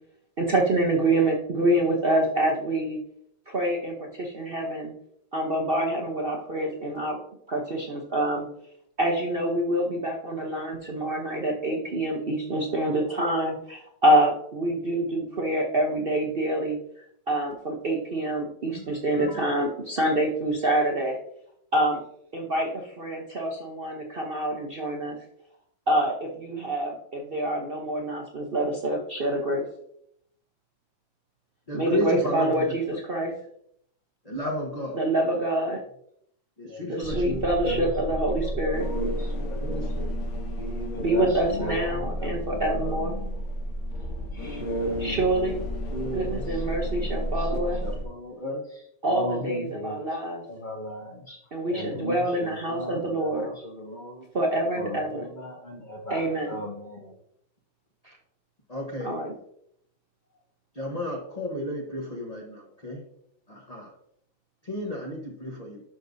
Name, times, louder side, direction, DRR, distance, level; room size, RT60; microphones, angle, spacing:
voice 1, 0.4-3.0 3.5-4.9 5.3-7.2 7.5-8.5 9.0-16.8 17.3-21.2 21.7-22.0 22.3-25.2 25.9-29.6 31.7-33.3 35.0-35.8 36.9-38.9 41.0-43.2 45.0-45.7 46.1-47.8 49.0-50.4 51.5-53.5 54.3-55.3 56.1-56.6 59.0-59.3, right 1 dB, 50° right, 0 dB, 0.6 m, -26 dB
voice 2, 18.7-19.7 31.7-33.0 34.2-35.0 36.6-37.3 39.5-40.1 58.0-58.2 58.7-59.2 60.7-63.0 63.5-63.9 64.6-65.8, left 1 dB, 30° left, -1 dB, 0.8 m, -33 dB
voice 3, 36.7-39.8 40.6-43.4 44.3-45.2 45.9-50.1 50.5-51.4 51.7-54.2 54.7-57.2, equal, 60° left, 3 dB, 0.5 m, -36 dB
sound 1, 37.0-48.0, equal, 85° left, 1.8 m, -32 dB
12.0 x 5.0 x 2.7 m, 0.72 s
omnidirectional pair, 2.1 m